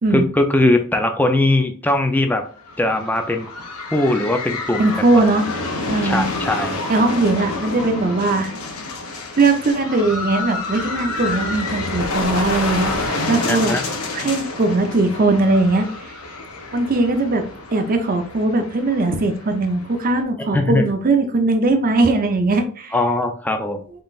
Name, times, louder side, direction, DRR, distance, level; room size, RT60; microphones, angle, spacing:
voice 1, 0.1-2.4 2.8-3.5 3.9-5.1 6.0-6.8 13.5-13.8 20.5-20.8 22.9-23.8, left 2 dB, 10° left, 5 dB, 0.4 m, -20 dB
sound 1, 2.6-20.2, left 3 dB, 85° left, 0.9 m, -28 dB
voice 2, 4.8-5.4 5.9-6.2 6.9-8.6 9.4-13.7 14.1-16.1 16.7-17.4 17.7-22.9, right 2 dB, 40° right, 7 dB, 0.6 m, -19 dB
3.9 x 3.8 x 2.4 m, 0.43 s
head